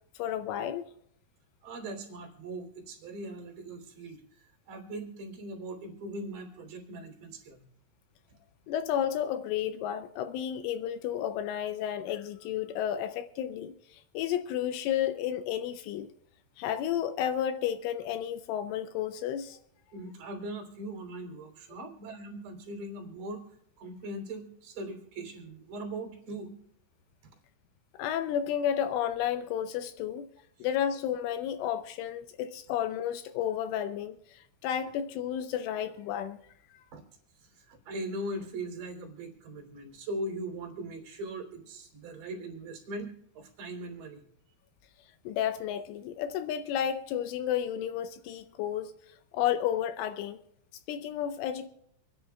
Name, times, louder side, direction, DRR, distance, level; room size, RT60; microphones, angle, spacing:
voice 1, 0.2-0.8 8.7-16.1 16.6-19.6 27.9-30.3 30.6-36.4 36.7-36.8 45.3-48.9 49.3-50.4 50.9-51.7, left 10 dB, 85° left, 2.9 m, -32 dB
voice 2, 1.6-7.7 19.9-26.5 30.6-30.7 36.9-37.0 37.3-44.3, right 1 dB, 45° right, 4.0 m, -40 dB
28.0 x 10.0 x 2.3 m
omnidirectional pair, 6.0 m